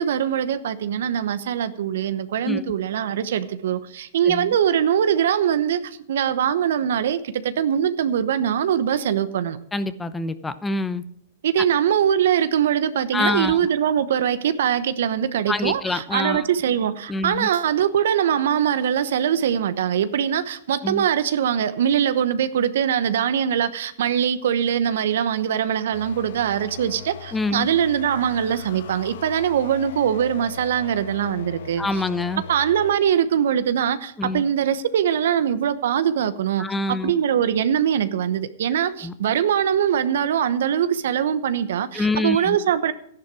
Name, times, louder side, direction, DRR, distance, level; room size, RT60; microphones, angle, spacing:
voice 1, 0.0-9.6 11.4-31.8 32.5-36.7 37.0-42.9, right 9 dB, 70° right, 1.0 m, -22 dB
voice 2, 9.7-11.0 13.1-13.6 15.5-16.5 17.1-17.5 20.8-21.1 27.3-27.7 31.8-32.4 34.2-34.4 36.6-37.1 39.0-39.1 41.9-42.6, left 2 dB, 10° left, 0.9 m, -26 dB
sound 1, 25.9-33.0, left 8 dB, 65° left, 0.7 m, -39 dB
13.5 x 11.0 x 4.8 m
hypercardioid pair, 115°, 0 cm